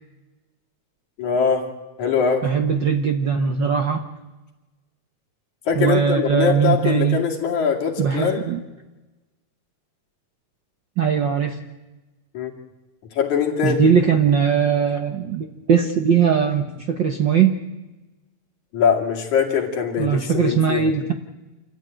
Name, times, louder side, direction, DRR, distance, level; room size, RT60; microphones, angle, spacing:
voice 1, 1.2-1.7 2.0-2.5 5.7-8.5 12.3-12.5 13.1-13.8 18.7-20.9, left 6 dB, 75° left, 1 dB, 3.8 m, -22 dB
voice 2, 2.4-4.0 5.8-7.2 8.0-8.6 11.0-11.6 13.6-17.6 20.0-21.2, right 7 dB, 60° right, 6 dB, 1.2 m, -20 dB
27.0 x 14.0 x 9.0 m, 1.1 s
omnidirectional pair, 3.4 m